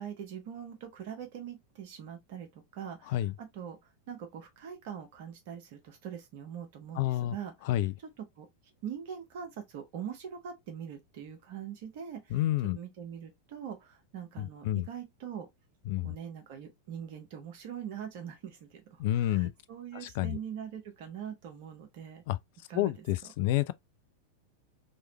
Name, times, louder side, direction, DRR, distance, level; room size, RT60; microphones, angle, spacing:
voice 1, 0.0-3.8 4.1-7.7 8.2-8.5 8.8-12.4 12.7-15.5 16.0-22.2 22.7-23.0, right 8 dB, 50° right, 1.2 m, -43 dB
voice 2, 7.0-7.3 7.7-7.9 12.3-12.8 14.4-14.9 15.9-16.2 19.0-19.5 20.0-20.4 22.3-22.4 22.7-23.7, left 14 dB, 50° left, 0.3 m, -29 dB
3.2 x 3.1 x 2.8 m
figure-of-eight pair, 90°, 0 cm